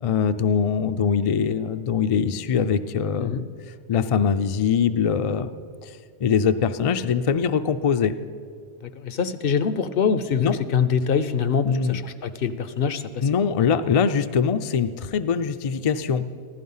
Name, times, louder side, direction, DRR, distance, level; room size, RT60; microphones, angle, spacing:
voice 1, 0.0-3.4 3.9-5.5 5.8-5.9 6.2-8.1 10.4-10.6 11.6-12.0 13.2-16.2, left 6 dB, 50° left, 9 dB, 0.4 m, -22 dB
voice 2, 8.8-13.2, left 6 dB, 65° left, 12 dB, 0.8 m, -24 dB
15.0 x 12.0 x 5.5 m, 2.2 s
omnidirectional pair, 1.0 m